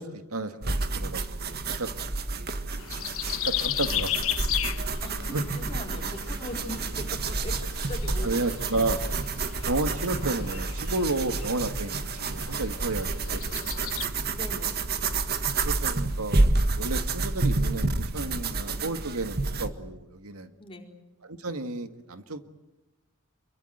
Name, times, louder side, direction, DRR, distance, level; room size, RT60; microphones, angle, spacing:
voice 1, 0.0-1.9 3.4-4.2 5.3-5.4 8.2-9.0 9.6-13.9 15.6-20.5 21.3-22.4, right 2 dB, 85° right, 9 dB, 1.9 m, -32 dB
sound 1, 0.6-19.7, right 3 dB, 45° right, 1.7 m, -29 dB
sound 2, 2.7-14.0, left 12 dB, 65° left, 1.1 m, -36 dB
voice 2, 5.0-8.3 14.3-14.8 20.6-20.9, left 1 dB, 25° left, 2 dB, 4.4 m, -40 dB
27.0 x 23.5 x 8.0 m, 0.98 s
head